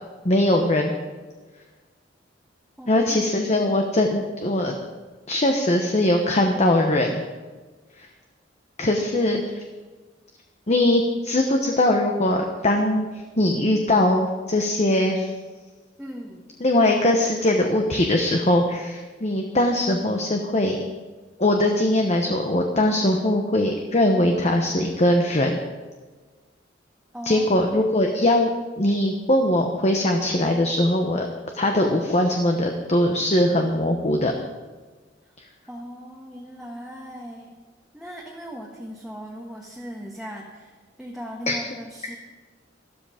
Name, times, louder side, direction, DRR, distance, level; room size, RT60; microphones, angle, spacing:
voice 1, 0.2-0.9 2.9-4.7 5.3-7.2 8.0-8.1 8.8-9.6 10.7-13.1 13.4-15.3 16.6-20.8 21.4-25.6 27.2-28.5 28.8-31.3 31.5-34.3 41.5-41.6, left 1 dB, 35° left, 3 dB, 1.0 m, -21 dB
voice 2, 2.8-3.2 3.4-3.6 16.0-16.5 27.1-27.9 35.7-37.5 37.9-42.2, equal, ahead, -2 dB, 1.3 m, -38 dB
13.0 x 13.0 x 5.0 m, 1.3 s
head